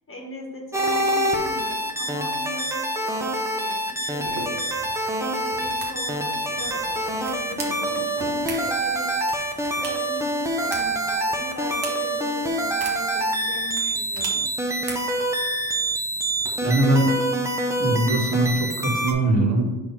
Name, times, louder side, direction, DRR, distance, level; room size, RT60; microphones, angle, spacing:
voice 1, 0.0-4.5 5.2-9.1 9.8-14.4, left 2 dB, 30° left, 0 dB, 1.4 m, -39 dB
sound 1, 0.7-19.1, right 1 dB, 5° right, 0.7 m, -26 dB
sound 2, 4.3-17.1, right 3 dB, 60° right, 1.5 m, -41 dB
voice 2, 16.6-17.1 17.8-19.7, right 2 dB, 40° right, -2 dB, 1.7 m, -21 dB
4.7 x 4.3 x 5.6 m, 1.1 s
cardioid pair, 105°, 44 cm